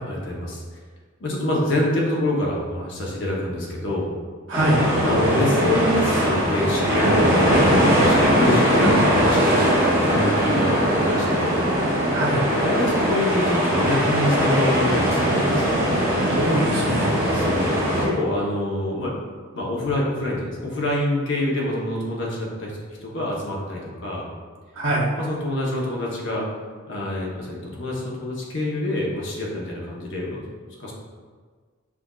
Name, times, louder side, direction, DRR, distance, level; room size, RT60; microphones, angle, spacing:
voice 1, 0.1-0.6 1.2-4.1 5.0-11.6 12.6-15.8 17.3-19.1 19.5-24.3 25.2-26.5 26.9-30.4 30.8-30.9, left 1 dB, 60° left, -3 dB, 0.8 m, -26 dB
sound 1, 4.5-18.0, equal, 10° right, 0.8 m, -20 dB
voice 2, 12.1-12.4 16.3-17.5 24.8-25.0, right 1 dB, 65° right, -5 dB, 1.0 m, -23 dB
6.0 x 2.5 x 2.3 m, 1.5 s
head